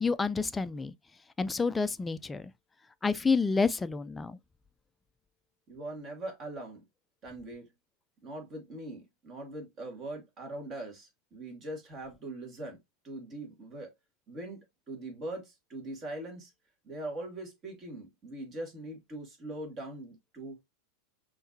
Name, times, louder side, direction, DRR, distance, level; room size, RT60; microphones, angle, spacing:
voice 1, 0.0-0.9 1.4-2.5 3.0-4.4, left 4 dB, 15° left, 0.4 m, -29 dB
voice 2, 5.7-6.8 7.2-7.7 8.2-12.8 13.0-13.9 14.3-16.5 16.8-20.6, right 1 dB, 35° right, 2.3 m, -41 dB
5.6 x 3.2 x 2.7 m
figure-of-eight pair, 90°, 0 cm